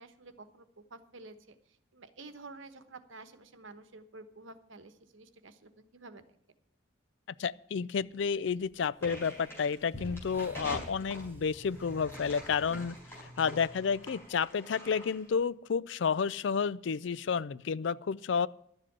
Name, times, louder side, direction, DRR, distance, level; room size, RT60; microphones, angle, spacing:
voice 1, 0.0-1.6 1.9-6.2, right 3 dB, 80° right, 11 dB, 1.2 m, -50 dB
voice 2, 7.4-13.0 13.4-18.5, left 6 dB, 70° left, 20 dB, 0.4 m, -31 dB
sound 1, 8.0-14.3, equal, 10° right, 1.2 m, -55 dB
sound 2, 8.2-8.4 9.0-13.3, left 1 dB, 35° left, 6.2 m, -50 dB
sound 3, 9.0-15.3, equal, 10° left, 4.5 m, -47 dB
12.0 x 7.6 x 8.6 m, 0.72 s
head